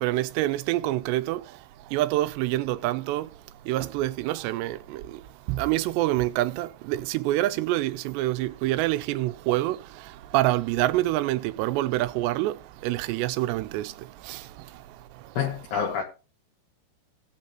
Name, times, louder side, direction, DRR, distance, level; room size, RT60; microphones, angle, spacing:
voice 1, 0.0-1.4 1.9-3.3 3.7-4.8 5.5-9.8 10.3-12.5 12.8-13.8, right 16 dB, 80° right, 2.7 m, -26 dB
voice 2, 15.4-16.0, left 7 dB, 65° left, 2.4 m, -27 dB
17.5 x 8.4 x 3.0 m
omnidirectional pair, 5.2 m